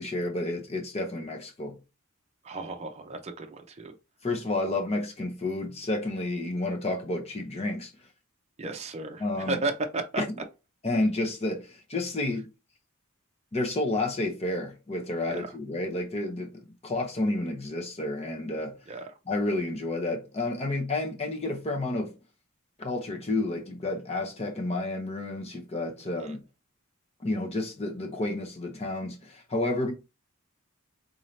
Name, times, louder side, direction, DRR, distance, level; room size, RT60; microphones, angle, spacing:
voice 1, 0.0-1.7 4.2-7.9 9.2-9.6 10.2-10.3 10.8-12.5 13.5-18.8 19.3-22.1 22.8-26.4 27.2-29.9, left 2 dB, 30° left, 0.7 m, -30 dB
voice 2, 2.4-3.9 8.6-10.2 15.3-15.5 18.9-19.1 26.2-26.3, right 3 dB, 30° right, 0.6 m, -33 dB
3.8 x 2.8 x 3.1 m
head